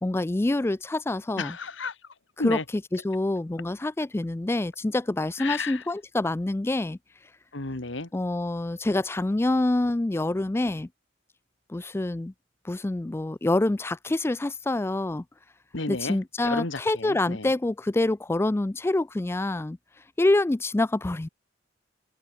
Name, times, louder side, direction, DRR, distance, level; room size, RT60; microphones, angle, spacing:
voice 1, 0.0-1.6 2.4-7.0 8.1-10.9 11.7-12.3 12.6-15.2 15.9-19.8 20.2-21.3, left 2 dB, 15° left, 0.3 m, -26 dB
voice 2, 1.4-1.9 2.4-2.6 5.4-5.8 7.5-8.1 15.7-16.2 16.4-17.5, left 3 dB, 70° left, 2.0 m, -32 dB
head